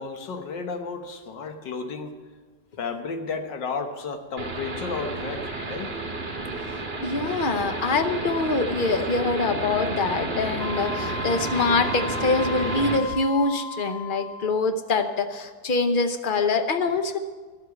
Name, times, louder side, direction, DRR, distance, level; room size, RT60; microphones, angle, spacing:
voice 1, 0.0-2.2 2.8-6.0, left 4 dB, 90° left, 6 dB, 1.8 m, -33 dB
sound 1, 4.4-13.0, right 3 dB, 35° right, 1.8 m, -31 dB
voice 2, 7.0-17.2, left 3 dB, 45° left, 8 dB, 0.7 m, -24 dB
Wind instrument woodwind instrument, 10.6-14.7, left 4 dB, 60° left, 1.0 m, -35 dB
12.5 x 8.0 x 8.2 m, 1.4 s
omnidirectional pair, 1.9 m